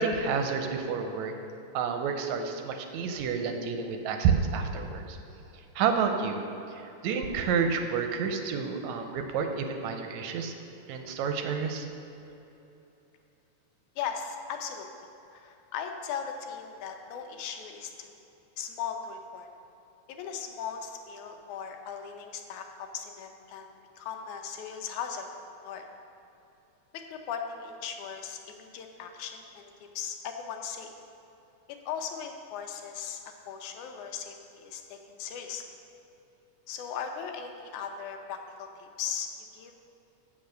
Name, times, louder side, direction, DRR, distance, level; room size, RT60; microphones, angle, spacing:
voice 1, 0.0-1.3 1.7-5.2 5.8-6.4 6.7-10.5 10.9-11.9, right 6 dB, 80° right, 5 dB, 1.9 m, -29 dB
voice 2, 14.0-14.9 15.3-18.1 18.6-19.5 20.1-23.7 24.0-25.3 25.6-25.8 26.9-29.7 30.0-30.9 31.7-33.2 33.5-35.6 36.7-39.3 39.5-39.7, left 7 dB, 85° left, 4 dB, 2.2 m, -38 dB
7.9 x 6.9 x 6.6 m, 3.0 s
omnidirectional pair, 3.4 m